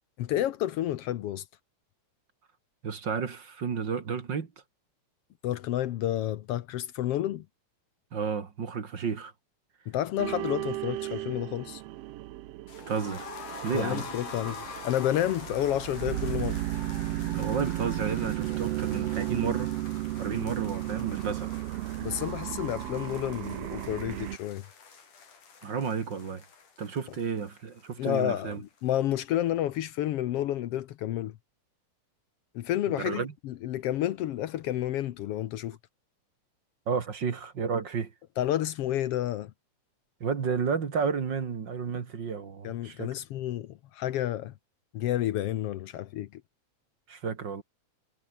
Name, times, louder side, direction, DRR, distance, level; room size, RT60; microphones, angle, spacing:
voice 1, 0.2-1.4 5.4-7.4 9.9-11.8 13.7-16.6 22.0-24.6 28.0-31.3 32.5-35.8 38.4-39.5 42.6-44.5 44.9-46.4, left 12 dB, 70° left, 1.4 m, -30 dB
voice 2, 2.8-4.5 8.1-9.3 12.9-13.3 13.6-14.1 17.3-19.7 20.2-21.5 25.6-26.4 26.8-28.6 33.0-33.3 36.9-38.1 40.2-43.1 47.1-47.6, right 6 dB, 40° right, 2.2 m, -31 dB
sound 1, 10.2-24.4, right 16 dB, 75° right, 1.4 m, -34 dB
sound 2, 12.7-28.5 28.8-28.9 29.2-29.3, left 5 dB, 90° left, 5.9 m, -46 dB
omnidirectional pair, 3.5 m